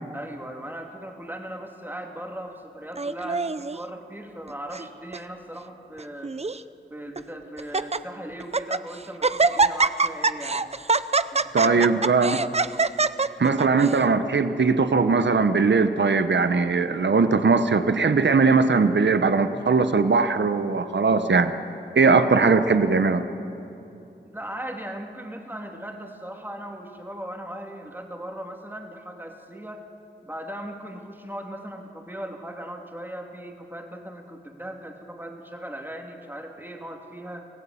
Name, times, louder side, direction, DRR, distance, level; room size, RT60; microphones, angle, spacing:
voice 1, 0.1-6.3 6.9-10.7 11.3-12.1 24.2-29.9 30.2-37.5, right 1 dB, 10° right, 2 dB, 2.8 m, -38 dB
Laughter, 3.0-3.8 4.5-4.9 5.1-5.2 6.0-6.6 7.2-7.3 7.6-8.0 8.4-8.8 9.2-14.0, right 4 dB, 35° right, 0.6 m, -24 dB
voice 2, 11.5-12.4 13.4-21.5 21.9-23.2, right 4 dB, 65° right, 10 dB, 1.1 m, -20 dB
24.5 x 16.5 x 8.6 m, 2.8 s
wide cardioid pair, 60°, 19 cm